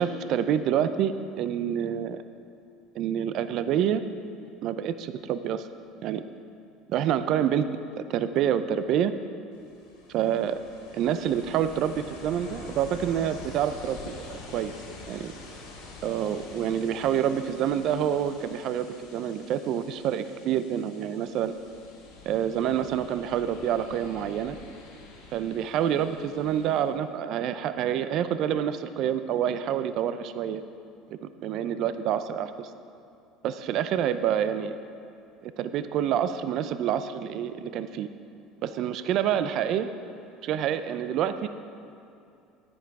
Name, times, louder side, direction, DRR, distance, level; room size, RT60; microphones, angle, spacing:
voice 1, 0.0-2.2 2.9-4.0 4.6-5.7 6.0-6.2 6.9-7.7 8.0-9.1 10.1-10.6 10.9-14.7 15.1-15.3 16.0-21.5 22.3-24.6 25.3-30.6 31.2-32.7 33.4-34.8 35.4-38.1 38.6-39.9 40.4-41.5, right 9 dB, 60° right, 12 dB, 0.5 m, -27 dB
Ocean, 9.5-26.9, left 3 dB, 85° left, 2.1 m, -46 dB
10.0 x 9.3 x 4.8 m, 2.6 s
hypercardioid pair, 85°, 0 cm